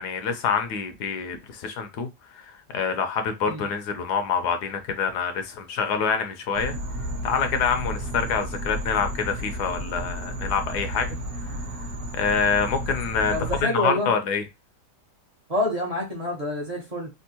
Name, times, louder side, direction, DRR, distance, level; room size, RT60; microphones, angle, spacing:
voice 1, 0.0-2.1 2.3-6.7 7.2-11.1 12.2-14.4, left 6 dB, 70° left, 1.1 m, -26 dB
sound 1, 6.5-13.6, right 1 dB, 55° right, 1.0 m, -32 dB
voice 2, 13.3-14.1 15.5-17.1, left 1 dB, 30° right, 0.7 m, -27 dB
3.5 x 2.4 x 2.8 m
omnidirectional pair, 1.9 m